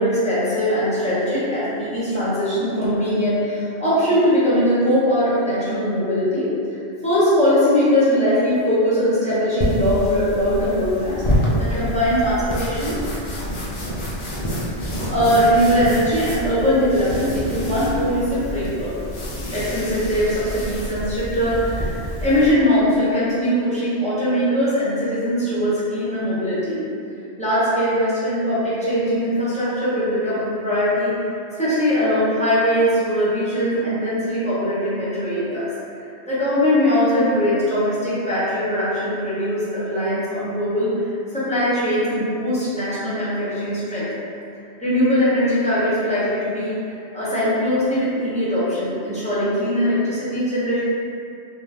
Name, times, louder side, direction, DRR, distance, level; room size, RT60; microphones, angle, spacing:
voice 1, 0.0-6.5 7.0-13.0 15.1-19.0 19.5-26.8 27.4-31.1 31.6-35.7 36.3-40.9 41.3-44.1 44.8-50.8, equal, 5° left, -11 dB, 0.7 m, -21 dB
sound 1, 9.6-22.5, equal, 45° left, 0.4 m, -27 dB
2.5 x 2.2 x 3.2 m, 2.6 s
omnidirectional pair, 1.1 m